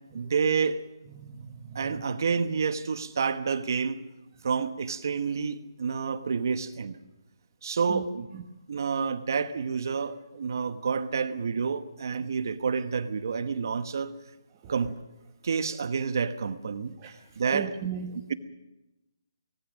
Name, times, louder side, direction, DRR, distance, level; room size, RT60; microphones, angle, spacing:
voice 1, 0.1-0.8 1.7-4.0 4.4-7.0 7.6-8.3 8.7-14.1 14.7-14.9 15.4-17.0 17.4-17.7 18.3-18.4, right 5 dB, 50° right, 11 dB, 1.1 m, -29 dB
voice 2, 1.2-2.0 7.9-8.0 8.3-8.4 14.6-14.7 17.0-18.2, right 8 dB, 20° right, 2 dB, 1.2 m, -38 dB
24.0 x 19.0 x 6.4 m, 1.0 s
hypercardioid pair, 170°, 2 cm